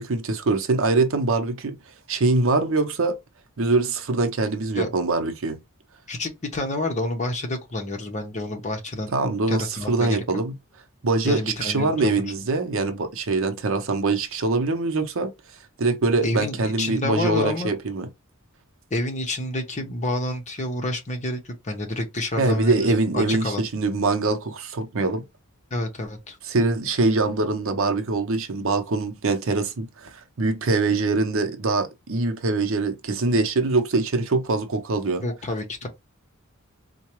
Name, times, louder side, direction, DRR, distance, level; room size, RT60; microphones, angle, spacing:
voice 1, 0.0-1.7 2.1-3.2 3.6-5.6 9.1-10.5 11.0-15.3 15.8-18.1 22.4-25.2 26.5-35.2, right 3 dB, 65° right, 0.7 m, -23 dB
voice 2, 6.1-9.1 9.5-10.2 11.2-12.2 16.2-17.7 18.9-23.6 25.7-26.4 35.2-35.9, left 1 dB, 35° left, 1.0 m, -28 dB
4.5 x 2.2 x 3.0 m
head